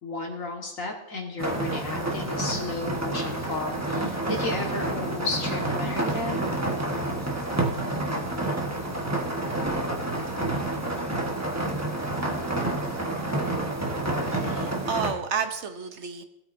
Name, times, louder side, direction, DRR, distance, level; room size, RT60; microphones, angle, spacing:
voice 1, 0.0-6.4, left 3 dB, 70° left, 1 dB, 2.0 m, -33 dB
sound 1, 1.4-15.1, right 2 dB, 10° right, 1.2 m, -29 dB
voice 2, 14.3-16.2, right 6 dB, 60° right, 7 dB, 1.1 m, -31 dB
18.0 x 8.5 x 2.6 m, 0.87 s
omnidirectional pair, 1.4 m